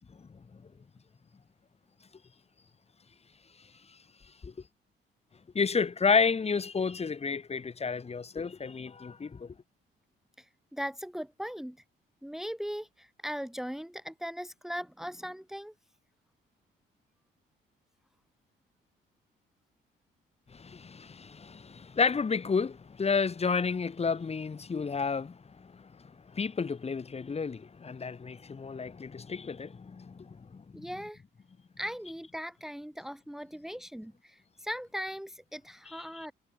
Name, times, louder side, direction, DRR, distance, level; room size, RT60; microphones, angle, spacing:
voice 1, 5.5-9.5 20.5-30.6 35.9-36.3, left 5 dB, 30° left, 1.9 m, -31 dB
voice 2, 10.4-11.8 12.2-15.7 30.7-31.2 31.8-36.3, equal, ahead, 2.2 m, -39 dB
cardioid pair, 90°, 20 cm